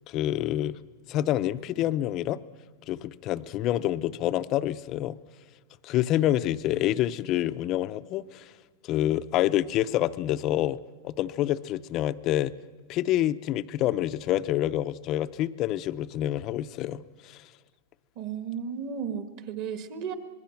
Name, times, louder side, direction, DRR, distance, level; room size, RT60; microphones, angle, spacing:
voice 1, 0.1-0.7 1.1-2.4 2.9-5.2 5.8-8.5 8.8-10.8 11.0-12.5 12.9-17.5, left 13 dB, 30° left, 0.5 m, -27 dB
voice 2, 18.1-20.1, right 7 dB, 40° right, 1.6 m, -34 dB
26.0 x 20.5 x 5.8 m
supercardioid pair, 165°, 0 cm